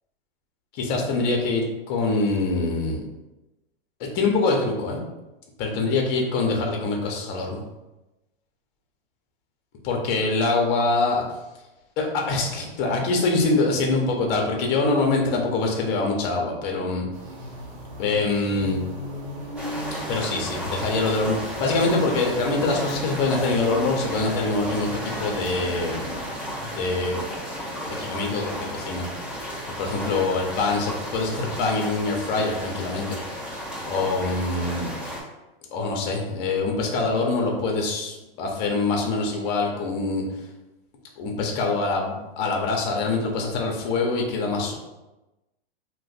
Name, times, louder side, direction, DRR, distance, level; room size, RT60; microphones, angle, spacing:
voice 1, 0.7-3.0 4.0-5.0 5.6-7.6 9.8-11.2 12.0-17.1 18.0-18.8 20.1-26.1 26.6-27.2 27.7-29.0 29.8-33.2 33.8-34.9 35.7-40.2 41.2-44.7, left 3 dB, 35° left, 1 dB, 0.7 m, -24 dB
sound 1, 17.1-26.3, right 1 dB, 50° right, 0.8 m, -39 dB
sound 2, 19.6-35.2, equal, 5° right, 0.6 m, -34 dB
2.4 x 2.2 x 4.0 m, 1.0 s
hypercardioid pair, 135°, 30 cm